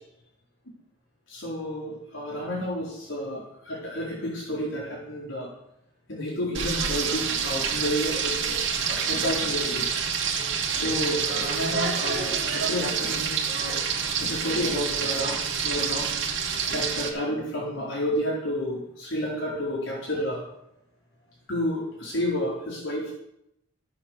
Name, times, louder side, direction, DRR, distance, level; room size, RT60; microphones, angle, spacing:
voice 1, 1.3-5.5 6.1-8.6 8.9-9.8 10.7-13.8 14.2-16.1 16.7-20.4 21.5-23.1, equal, 70° left, -6 dB, 4.3 m, -30 dB
Frying (food), 6.5-17.1, right 6 dB, 65° right, 2.7 m, -27 dB
15.5 x 8.6 x 6.6 m, 0.83 s
head